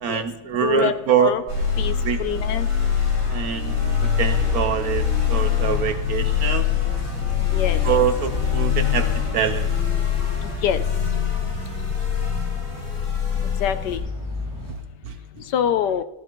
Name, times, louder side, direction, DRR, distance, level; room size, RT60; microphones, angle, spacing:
voice 1, 0.0-1.5 2.0-2.2 3.3-3.7 4.2-6.7 7.8-9.7 15.1-15.2, right 7 dB, 65° right, 9 dB, 1.0 m, -24 dB
voice 2, 0.6-1.4 1.8-1.9 2.2-2.7 7.5-7.8 10.6-10.8 13.6-14.0 15.5-16.0, left 9 dB, 70° left, 11 dB, 1.1 m, -24 dB
sound 1, 1.5-14.0, left 8 dB, 45° left, 4.9 m, -23 dB
sound 2, 5.4-14.7, left 1 dB, 10° left, 4.9 m, -36 dB
17.0 x 14.5 x 3.0 m, 1.1 s
omnidirectional pair, 2.1 m